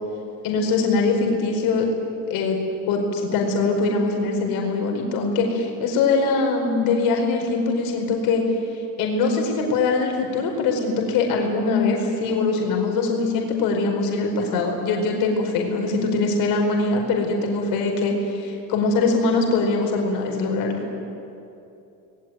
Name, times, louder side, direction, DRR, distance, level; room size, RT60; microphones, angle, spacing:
voice 1, 0.4-1.9 2.3-2.6 2.9-8.4 9.0-20.8, left 3 dB, 85° left, 2 dB, 4.9 m, -22 dB
28.0 x 20.5 x 9.3 m, 2.8 s
cardioid pair, 145°, 34 cm